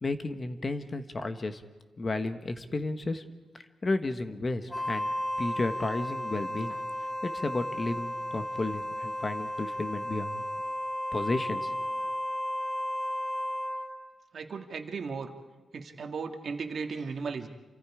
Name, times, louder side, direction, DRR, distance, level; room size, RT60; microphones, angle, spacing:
voice 1, 0.0-1.6 2.0-3.2 3.8-5.1 5.4-6.7 7.2-10.4 11.1-11.7, left 2 dB, 30° left, 9 dB, 1.3 m, -32 dB
Wind instrument woodwind instrument, 4.7-14.0, left 1 dB, 10° left, 2.0 m, -34 dB
voice 2, 14.3-15.3 15.7-17.5, right 5 dB, 55° right, 5 dB, 1.9 m, -36 dB
28.5 x 25.5 x 5.0 m, 1.3 s
wide cardioid pair, 165°, 0 cm